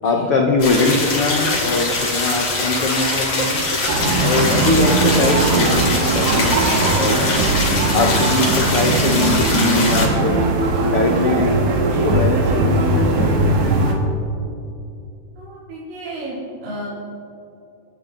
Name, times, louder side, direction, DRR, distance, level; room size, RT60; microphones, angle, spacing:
voice 1, 0.0-3.7 4.2-7.3 7.9-10.5 10.8-13.9, left 3 dB, 90° left, 2 dB, 1.2 m, -22 dB
sound 1, 0.6-10.1, left 2 dB, 45° left, 3.7 m, -22 dB
sound 2, 3.9-13.9, right 3 dB, 90° right, 4.0 m, -19 dB
voice 2, 15.4-16.9, right 1 dB, 65° right, -8 dB, 4.9 m, -32 dB
28.5 x 12.0 x 4.0 m, 2.7 s
omnidirectional pair, 4.3 m